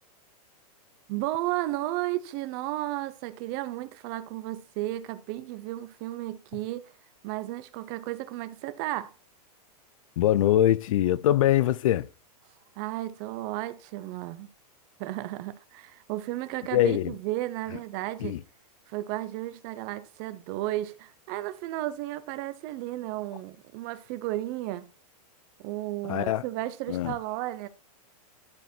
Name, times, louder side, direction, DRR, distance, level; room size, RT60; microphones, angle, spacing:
voice 1, 1.1-6.9 7.2-9.1 12.8-14.5 15.0-18.4 18.9-24.9 25.6-27.7, right 16 dB, 30° right, 0.7 m, -33 dB
voice 2, 10.2-12.1 16.7-17.1 18.2-18.4 26.0-26.4 26.9-27.1, left 13 dB, 55° left, 0.5 m, -23 dB
12.0 x 4.9 x 4.4 m
supercardioid pair, 165°, 20 cm